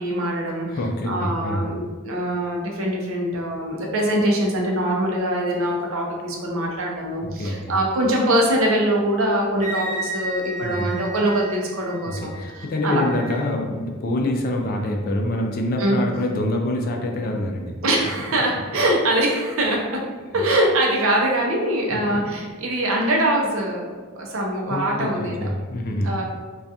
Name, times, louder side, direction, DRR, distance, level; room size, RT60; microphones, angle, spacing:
voice 1, 0.0-0.7 1.1-13.0 15.8-16.0 17.8-20.0 20.3-25.5 26.0-26.3, right 1 dB, 75° right, -1 dB, 0.5 m, -23 dB
voice 2, 0.7-1.7 7.2-7.7 10.6-10.9 12.1-17.7 21.9-22.3 24.7-26.1, left 1 dB, 45° left, 2 dB, 0.3 m, -26 dB
Wind instrument woodwind instrument, 9.6-13.5, right 2 dB, 35° right, 0.7 m, -34 dB
2.3 x 2.3 x 2.7 m, 1.4 s
head